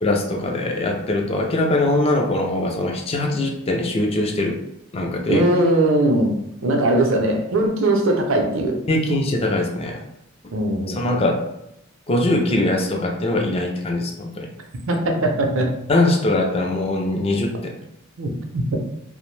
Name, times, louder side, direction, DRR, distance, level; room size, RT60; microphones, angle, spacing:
voice 1, 0.0-4.6 4.9-5.4 8.9-10.0 11.0-11.4 12.1-14.5 15.9-17.5, left 2 dB, 30° left, 2 dB, 0.4 m, -21 dB
voice 2, 5.3-6.3 6.6-8.8 10.5-11.2 14.9-15.7 18.2-18.6, right 1 dB, 75° right, 2 dB, 0.5 m, -20 dB
2.6 x 2.0 x 3.1 m, 0.82 s
head